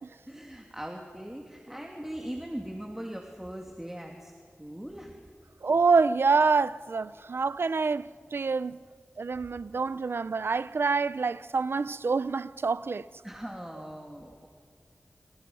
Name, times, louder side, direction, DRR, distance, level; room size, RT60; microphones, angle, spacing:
voice 1, 0.3-4.3 4.6-5.2 7.1-7.2 13.2-14.5, equal, 10° right, 2.9 m, -40 dB
voice 2, 5.6-8.8 9.2-13.1, right 4 dB, 70° right, 0.6 m, -26 dB
30.0 x 29.0 x 5.6 m
wide cardioid pair, 65°, 4 cm